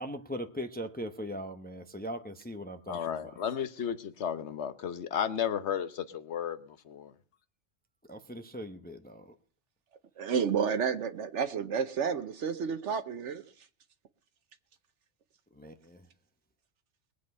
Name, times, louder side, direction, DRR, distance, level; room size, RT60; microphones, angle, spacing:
voice 1, 0.0-3.4 8.1-9.3 15.5-16.0, equal, 10° left, 0.9 m, -40 dB
voice 2, 2.9-7.1, left 8 dB, 70° left, 1.3 m, -33 dB
voice 3, 10.2-13.4, right 6 dB, 80° right, 1.2 m, -30 dB
21.5 x 8.4 x 5.4 m
omnidirectional pair, 1.2 m